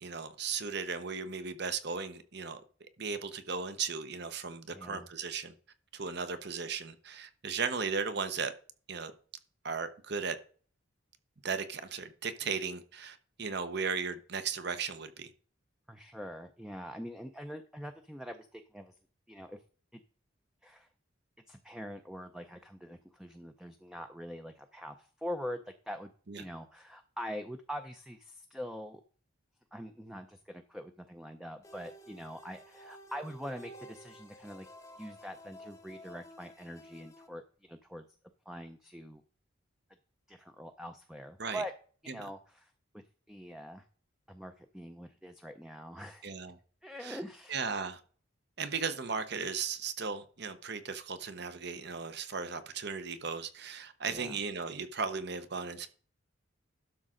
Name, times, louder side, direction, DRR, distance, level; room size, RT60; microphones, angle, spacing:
voice 1, 0.0-2.6 3.0-5.5 5.9-8.5 8.9-9.1 9.6-10.4 11.4-15.3 26.3-26.4 41.4-41.6 42.1-42.2 46.2-46.5 47.0-47.2 47.5-48.0 48.6-55.9, right 5 dB, 55° right, 0.9 m, -36 dB
voice 2, 4.7-5.1 15.9-19.0 19.3-19.6 19.9-20.0 20.6-20.9 21.5-29.0 29.7-34.7 35.0-38.0 38.5-39.2 40.3-41.7 42.0-43.8 44.3-46.3 46.8-47.6 54.1-54.4, equal, ahead, 0.5 m, -44 dB
sound 1, 31.6-37.3, equal, 15° left, 0.9 m, -52 dB
12.0 x 6.1 x 3.8 m
head